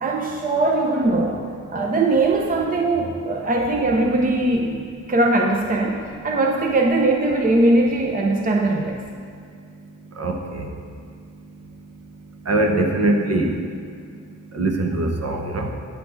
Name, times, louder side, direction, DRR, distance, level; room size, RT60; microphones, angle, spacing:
voice 1, 0.0-1.4 1.7-9.0, right 2 dB, 30° right, 1 dB, 0.7 m, -20 dB
voice 2, 10.2-10.7 12.5-13.6 14.5-15.7, right 2 dB, 55° right, 2 dB, 1.1 m, -22 dB
9.4 x 4.2 x 7.1 m, 2.2 s
cardioid pair, 100°, 30 cm